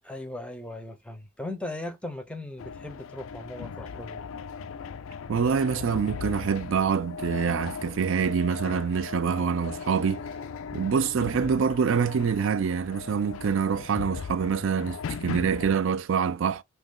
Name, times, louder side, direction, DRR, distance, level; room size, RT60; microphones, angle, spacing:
voice 1, 0.0-4.2, left 1 dB, 5° left, 0.6 m, -38 dB
sound 1, 2.6-15.8, left 6 dB, 65° left, 0.3 m, -38 dB
voice 2, 5.3-10.2 10.7-16.6, right 6 dB, 60° right, 0.3 m, -26 dB
2.9 x 2.6 x 3.6 m
head